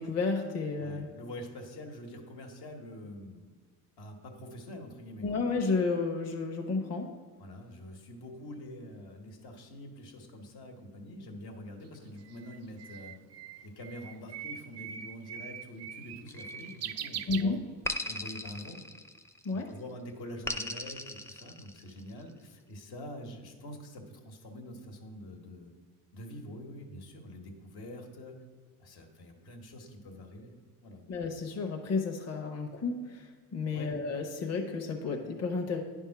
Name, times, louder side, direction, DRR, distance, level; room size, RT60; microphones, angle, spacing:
voice 1, 0.0-1.1 5.2-7.1 17.3-17.6 19.4-19.7 31.1-35.8, left 4 dB, 40° left, 3 dB, 0.9 m, -32 dB
voice 2, 0.8-3.4 4.0-5.3 7.4-13.2 13.6-17.6 18.0-18.8 19.5-25.7 26.1-28.4 28.8-30.5 30.8-31.0 33.7-34.0, left 1 dB, 75° left, 2 dB, 1.4 m, -45 dB
Bird, 11.9-18.1, right 9 dB, 40° right, 0.4 m, -42 dB
sound 1, 16.3-17.1 17.8-19.5 20.5-22.1, left 1 dB, 5° left, 0.5 m, -38 dB
9.9 x 3.6 x 5.8 m, 1.5 s
cardioid pair, 100°, 39 cm